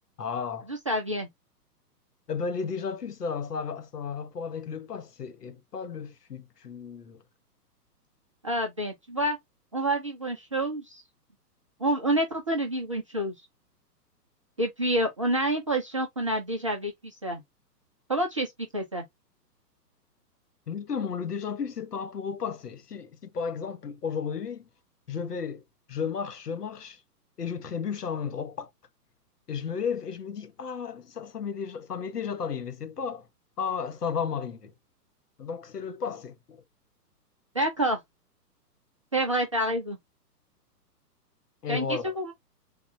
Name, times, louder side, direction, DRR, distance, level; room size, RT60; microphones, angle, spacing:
voice 1, 0.2-0.7 2.3-7.2 20.7-24.7 25.1-25.6 25.9-27.0 27.4-28.7 29.5-33.3 33.6-34.7 35.4-36.6 41.6-42.0, left 6 dB, 70° left, 1.0 m, -33 dB
voice 2, 0.9-1.3 8.4-9.4 9.7-11.0 11.8-13.3 14.6-17.4 18.1-19.0 37.5-38.0 39.1-40.0 41.7-42.3, right 1 dB, 20° right, 0.4 m, -28 dB
3.6 x 2.3 x 4.1 m
figure-of-eight pair, 120°, 49 cm